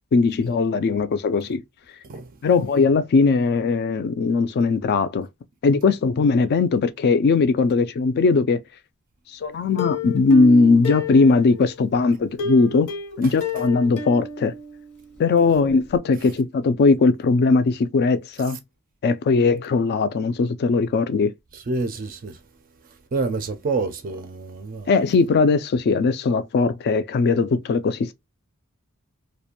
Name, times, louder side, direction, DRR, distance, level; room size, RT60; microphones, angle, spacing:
voice 1, 0.1-1.6 2.4-5.3 5.6-8.6 9.3-12.9 13.2-14.5 15.2-18.6 19.0-21.3 24.9-28.1, left 4 dB, 45° left, 0.3 m, -19 dB
Plucked string instrument, 9.8-11.8 12.4-15.2 15.5-15.6 15.9-16.0, left 3 dB, 80° left, 0.9 m, -30 dB
voice 2, 21.5-22.4 23.1-24.9, right 3 dB, 40° right, 0.4 m, -28 dB
2.5 x 2.1 x 2.7 m
head